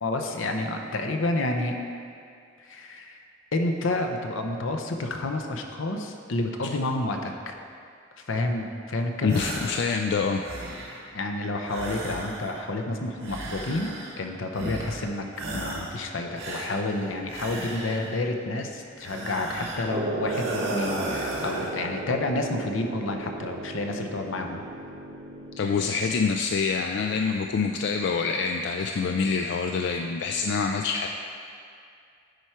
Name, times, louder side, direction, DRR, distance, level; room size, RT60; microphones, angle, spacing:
voice 1, 0.0-1.7 2.6-3.2 3.5-7.5 8.2-9.5 11.1-13.9 14.2-15.2 15.5-24.6, left 2 dB, 80° left, 4 dB, 0.7 m, -29 dB
voice 2, 9.2-10.4 25.6-31.1, left 5 dB, 60° left, 4 dB, 0.3 m, -26 dB
sound 1, 9.3-9.9 10.2-11.1 11.7-12.7 13.2-14.2 14.5-15.1 15.3-16.0 16.4-18.2 19.0-19.9 20.3-21.8, right 1 dB, 85° right, 1.6 m, -35 dB
sound 2, 19.9-26.1, right 2 dB, 25° right, 0.4 m, -35 dB
10.0 x 4.6 x 4.5 m, 2.4 s
head